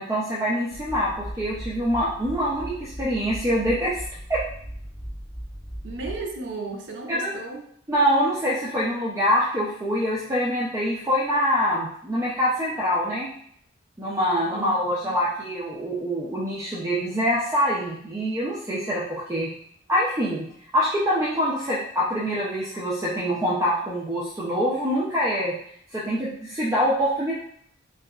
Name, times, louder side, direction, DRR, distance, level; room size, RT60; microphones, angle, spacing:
voice 1, 0.0-3.9 4.3-4.4 7.1-7.3 7.9-13.3 14.0-19.5 19.9-20.5 20.7-25.6 25.9-27.3, equal, 15° right, -7 dB, 0.4 m, -25 dB
sound 1, 0.7-6.5, equal, 5° left, 1.4 m, -37 dB
voice 2, 5.8-7.7 14.5-14.8 15.0-15.2, right 3 dB, 70° right, 1 dB, 0.5 m, -34 dB
2.7 x 2.3 x 2.3 m, 0.64 s
head